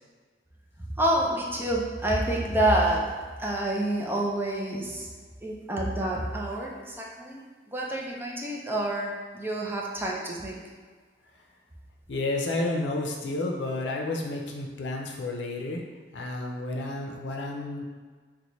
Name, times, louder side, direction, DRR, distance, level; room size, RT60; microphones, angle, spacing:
voice 1, 1.0-3.0 3.4-5.1 5.4-7.4 7.7-10.6, right 1 dB, 10° right, -2 dB, 0.4 m, -28 dB
voice 2, 12.1-15.8 16.1-17.8, left 2 dB, 90° left, 1 dB, 0.5 m, -31 dB
4.1 x 2.2 x 3.0 m, 1.5 s
head